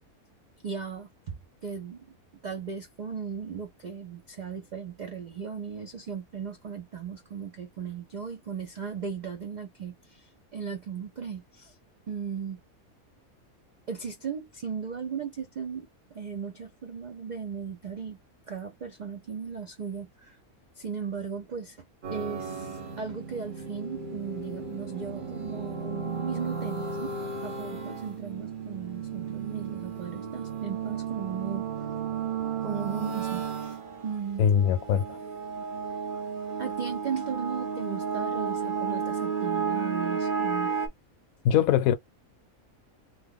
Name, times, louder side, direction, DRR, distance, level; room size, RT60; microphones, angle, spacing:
voice 1, 0.6-2.1 2.4-11.8 12.1-12.6 13.9-18.2 18.5-20.4 20.7-21.8 22.1-27.1 27.4-31.7 32.6-33.8 34.0-34.5 36.6-40.7, right 6 dB, 90° right, 0.4 m, -37 dB
sound 1, 22.0-40.9, right 6 dB, 40° right, 0.9 m, -33 dB
voice 2, 34.4-35.2 41.4-41.9, left 9 dB, 75° left, 1.0 m, -22 dB
2.9 x 2.2 x 3.5 m
omnidirectional pair, 1.5 m